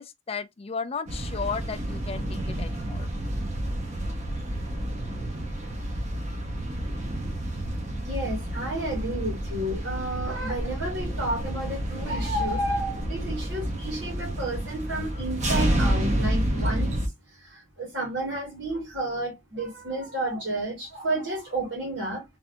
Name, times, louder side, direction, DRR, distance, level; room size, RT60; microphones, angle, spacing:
voice 1, 0.0-3.1, left 5 dB, 30° left, 0.4 m, -34 dB
sound 1, 1.1-17.1, right 1 dB, 35° right, 0.9 m, -29 dB
voice 2, 8.0-22.2, right 1 dB, 65° right, 2.0 m, -31 dB
3.4 x 3.3 x 2.7 m
head